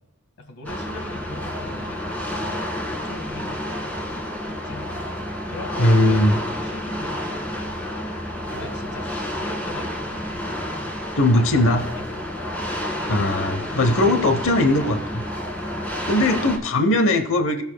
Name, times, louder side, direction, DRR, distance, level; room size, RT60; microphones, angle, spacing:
voice 1, 0.4-5.0 5.5-8.0 8.5-10.6 11.3-12.3 12.8-13.0 13.4-15.0, left 2 dB, 90° left, 6 dB, 1.8 m, -41 dB
sound 1, 0.6-16.6, left 1 dB, 10° left, 1.6 m, -30 dB
voice 2, 5.8-6.4 11.2-11.8 13.1-15.2 16.1-17.6, left 1 dB, 60° left, 8 dB, 0.9 m, -19 dB
17.5 x 6.9 x 2.2 m, 0.98 s
head